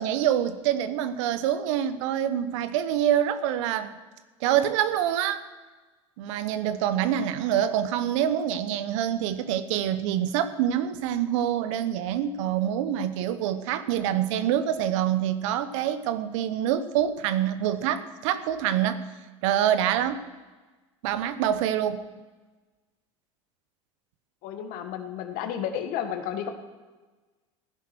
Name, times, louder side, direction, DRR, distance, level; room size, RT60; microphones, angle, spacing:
voice 1, 0.0-3.9 4.4-5.4 6.2-19.0 19.4-20.2 21.0-22.1, right 10 dB, 70° right, 13 dB, 1.0 m, -26 dB
voice 2, 24.4-26.5, left 9 dB, 60° left, 7 dB, 1.8 m, -32 dB
15.5 x 10.5 x 6.3 m, 1.3 s
hypercardioid pair, 80°, 16 cm